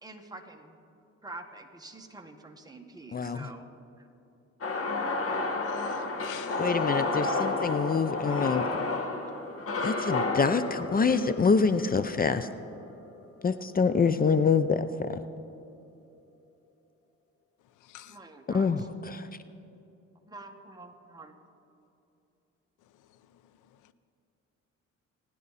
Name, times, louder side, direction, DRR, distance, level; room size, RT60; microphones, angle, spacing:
voice 1, 0.0-0.8 1.2-3.7 4.0-4.1 18.0-18.9 20.2-21.4, right 2 dB, 15° right, 1.6 m, -46 dB
voice 2, 3.1-3.5 6.6-8.7 9.8-12.5 13.4-15.2 18.5-19.3, left 5 dB, 30° left, 0.6 m, -26 dB
sound 1, 4.6-12.8, left 3 dB, 50° left, 2.0 m, -31 dB
voice 3, 5.6-6.7 17.8-18.2 23.1-23.4 23.8-23.9, left 14 dB, 90° left, 0.7 m, -48 dB
27.0 x 10.0 x 4.2 m
cardioid pair, 90°, 30 cm